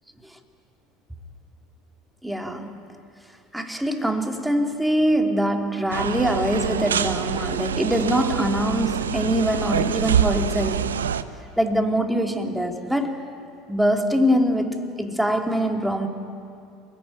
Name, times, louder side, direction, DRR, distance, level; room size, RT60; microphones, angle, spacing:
voice 1, 2.2-2.7 3.5-10.9 11.6-13.2 13.7-16.1, equal, 5° right, 2.9 m, -23 dB
sound 1, 5.9-11.2, right 8 dB, 75° right, 0.9 m, -25 dB
28.5 x 21.0 x 9.2 m
figure-of-eight pair, 70°, 0 cm